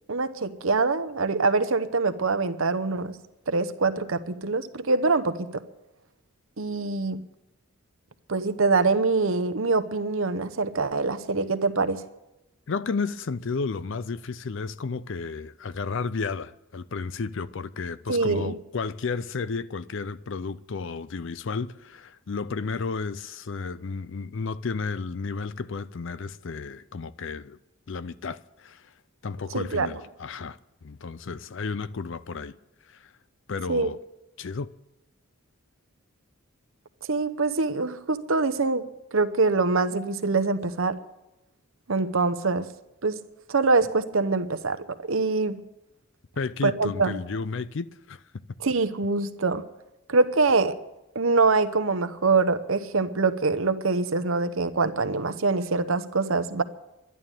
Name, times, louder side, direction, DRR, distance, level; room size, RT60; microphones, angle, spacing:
voice 1, 0.1-3.2 3.5-5.6 6.6-7.2 8.3-12.0 18.1-18.6 29.5-29.9 33.7-33.9 37.0-41.0 41.9-42.7 43.0-43.2 43.5-45.6 46.6-47.1 48.6-49.6 50.1-50.8 51.1-56.6, right 3 dB, 70° right, 0.9 m, -24 dB
voice 2, 12.7-27.6 27.9-28.8 29.2-32.6 32.9-33.0 33.5-34.0 34.4-34.7 46.4-48.2, left 4 dB, 60° left, 0.5 m, -32 dB
11.5 x 11.0 x 8.9 m
head